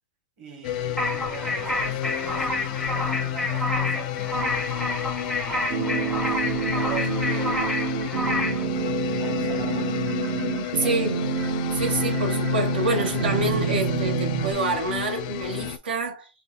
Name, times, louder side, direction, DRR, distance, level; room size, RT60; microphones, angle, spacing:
voice 1, 0.4-4.6 5.2-8.5 9.2-10.1 10.6-11.3, right 6 dB, 35° right, 1.8 m, -42 dB
sound 1, 0.6-15.8, left 12 dB, 50° left, 0.4 m, -31 dB
sound 2, 1.0-8.6, left 1 dB, ahead, 0.6 m, -29 dB
sound 3, 5.7-14.5, right 7 dB, 55° right, 0.7 m, -28 dB
voice 2, 10.7-11.2 11.7-16.3, right 2 dB, 80° right, 1.4 m, -27 dB
3.3 x 2.4 x 4.0 m
hypercardioid pair, 140°, 5 cm